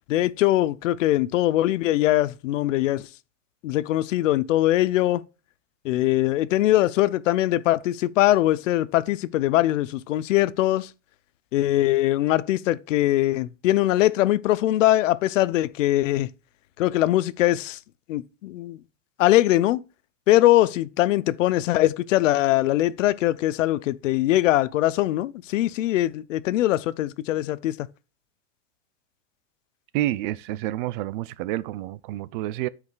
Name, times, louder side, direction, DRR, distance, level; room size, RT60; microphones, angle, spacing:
voice 1, 0.1-3.1 3.6-5.2 5.8-10.9 11.5-16.3 16.8-17.8 18.1-18.8 19.2-19.8 20.3-27.8, left 15 dB, 85° left, 0.7 m, -22 dB
voice 2, 29.9-32.7, right 15 dB, 45° right, 0.5 m, -29 dB
13.0 x 4.9 x 2.4 m
supercardioid pair, 150°, 37 cm